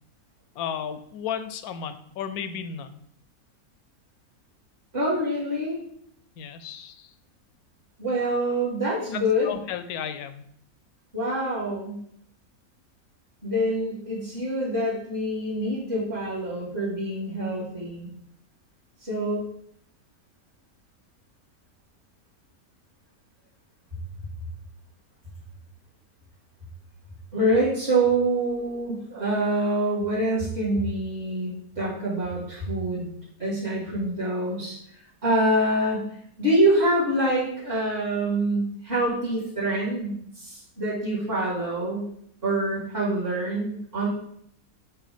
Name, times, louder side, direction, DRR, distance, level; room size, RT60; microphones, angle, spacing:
voice 1, 0.6-3.0 6.4-7.1 9.1-10.4, left 8 dB, 80° left, 11 dB, 1.1 m, -34 dB
voice 2, 4.9-5.8 8.0-9.5 11.1-12.0 13.4-18.1 19.0-19.5 27.3-33.1 33.4-34.7 35.2-36.1 36.4-42.1 42.4-44.1, right 1 dB, 40° right, -8 dB, 2.5 m, -25 dB
8.4 x 3.2 x 5.0 m, 0.69 s
omnidirectional pair, 1.6 m